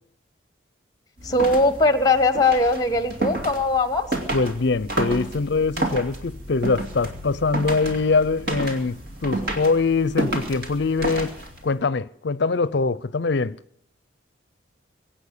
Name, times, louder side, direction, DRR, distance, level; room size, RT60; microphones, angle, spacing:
voice 1, 1.2-4.1, left 2 dB, 20° left, 1.1 m, -20 dB
sound 1, 1.2-11.7, right 1 dB, 50° right, 2.6 m, -31 dB
voice 2, 4.3-11.4 11.6-13.6, left 4 dB, 60° left, 0.5 m, -23 dB
23.0 x 9.0 x 6.7 m
head